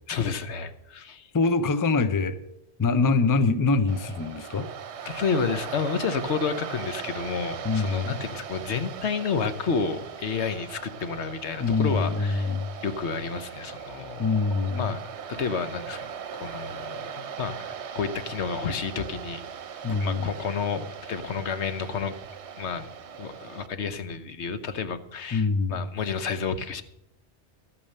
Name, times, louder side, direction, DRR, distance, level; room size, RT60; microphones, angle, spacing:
voice 1, 0.1-1.3 5.1-12.5 12.8-14.3 14.8-15.0 15.3-19.4 19.9-22.1 22.6-22.9 23.2-26.8, left 5 dB, 80° left, 1.2 m, -30 dB
voice 2, 1.3-2.4 2.8-4.7 7.6-8.2 11.6-12.7 14.2-14.9 19.8-20.3 25.3-25.8, left 4 dB, 25° left, 0.5 m, -24 dB
Waves surf, 3.9-23.7, right 7 dB, 75° right, 1.1 m, -39 dB
13.0 x 8.8 x 6.6 m
omnidirectional pair, 1.1 m